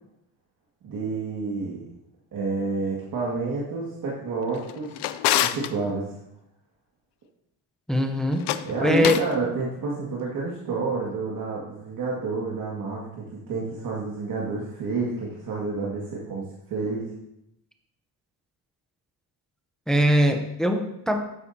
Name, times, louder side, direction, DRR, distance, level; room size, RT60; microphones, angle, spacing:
voice 1, 0.8-1.8 2.3-5.1 5.4-6.2 8.6-17.1, right 3 dB, 55° right, -4 dB, 2.1 m, -29 dB
Drawer open or close, 4.5-5.7 8.3-9.3, left 13 dB, 75° left, 0.6 m, -27 dB
voice 2, 7.9-8.5 8.8-9.2 19.9-21.2, equal, ahead, 4 dB, 0.7 m, -21 dB
12.5 x 9.8 x 2.8 m, 0.82 s
cardioid pair, 150°, 41 cm